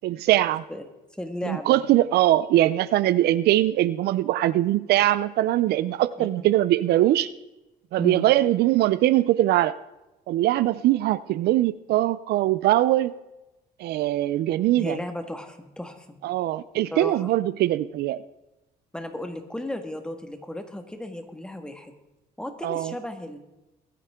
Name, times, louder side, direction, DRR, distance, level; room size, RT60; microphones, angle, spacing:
voice 1, 0.0-0.6 1.4-7.3 7.9-9.7 10.3-13.1 13.8-15.0 16.2-18.2 22.6-22.9, right 14 dB, 70° right, 17 dB, 0.5 m, -22 dB
voice 2, 1.2-1.8 6.2-6.5 8.0-8.3 14.8-16.2 16.9-17.3 18.9-21.9 22.4-23.4, left 1 dB, 5° left, 6 dB, 1.7 m, -34 dB
22.0 x 10.0 x 3.7 m, 1.0 s
cardioid pair, 110°, 17 cm